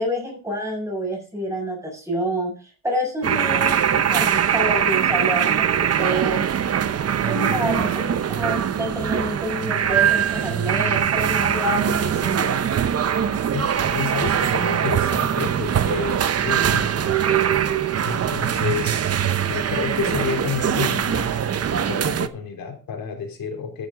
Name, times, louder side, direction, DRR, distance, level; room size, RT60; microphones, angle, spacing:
voice 1, 0.0-2.5 2.8-6.4 7.2-12.6, equal, 10° right, -1 dB, 6.4 m, -28 dB
sound 1, 3.2-22.3, right 8 dB, 45° right, 0.8 m, -22 dB
voice 2, 13.5-17.1 18.0-19.0 19.4-23.9, left 6 dB, 85° left, 2 dB, 3.5 m, -30 dB
13.5 x 7.9 x 3.8 m, 0.36 s
wide cardioid pair, 160°, 34 cm